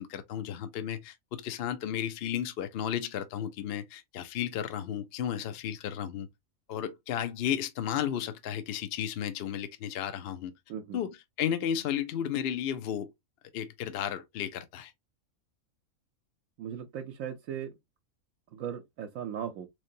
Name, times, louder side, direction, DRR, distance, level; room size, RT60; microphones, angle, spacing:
voice 1, 0.0-6.3 6.7-10.5 10.9-13.1 13.5-14.9, left 9 dB, 60° left, 0.6 m, -33 dB
voice 2, 10.7-11.0 16.6-17.7 18.5-19.7, right 9 dB, 80° right, 1.0 m, -37 dB
3.7 x 3.2 x 2.6 m
omnidirectional pair, 1.4 m